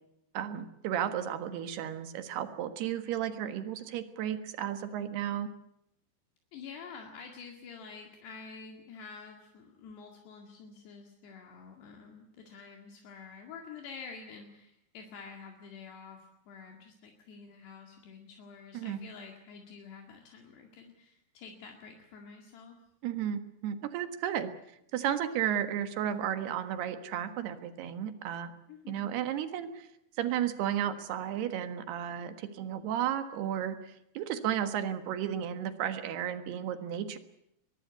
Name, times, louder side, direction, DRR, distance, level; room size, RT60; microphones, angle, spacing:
voice 1, 0.4-5.5 18.7-19.0 23.0-24.5 24.9-28.5 28.9-29.9 30.2-33.8 34.2-37.2, right 10 dB, 70° right, 9 dB, 3.4 m, -33 dB
voice 2, 6.5-22.8 28.7-29.1, left 5 dB, 70° left, 2 dB, 4.2 m, -48 dB
23.0 x 22.0 x 8.3 m, 0.81 s
omnidirectional pair, 5.0 m